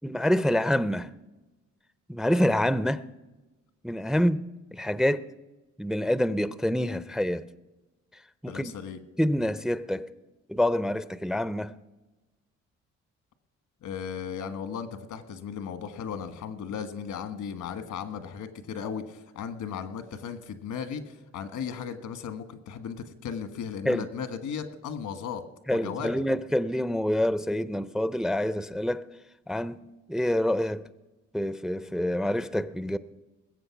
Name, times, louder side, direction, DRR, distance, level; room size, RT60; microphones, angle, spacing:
voice 1, 0.0-1.1 2.1-3.0 3.8-4.5 4.7-5.3 5.8-7.4 8.4-8.7 9.2-10.1 10.5-11.7 23.9-24.1 25.7-29.1 29.5-30.8 31.3-33.0, left 1 dB, ahead, 0.4 m, -26 dB
voice 2, 8.5-9.0 13.8-25.4 25.7-26.1, left 7 dB, 75° left, 1.5 m, -36 dB
20.5 x 8.0 x 5.9 m
cardioid pair, 90°, 30 cm